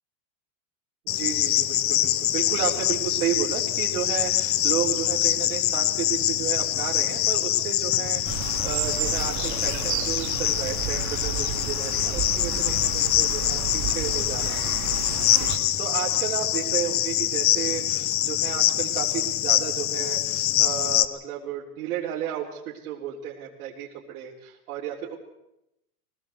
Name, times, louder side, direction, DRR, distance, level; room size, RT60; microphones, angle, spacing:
Cricket, 1.1-21.0, left 13 dB, 30° left, 0.9 m, -25 dB
voice 1, 1.1-15.1 15.3-25.1, right 10 dB, 75° right, -4 dB, 3.7 m, -33 dB
sound 1, 8.2-15.6, right 11 dB, 40° right, 2.3 m, -32 dB
22.5 x 18.0 x 7.8 m, 0.86 s
supercardioid pair, 150°, 45 cm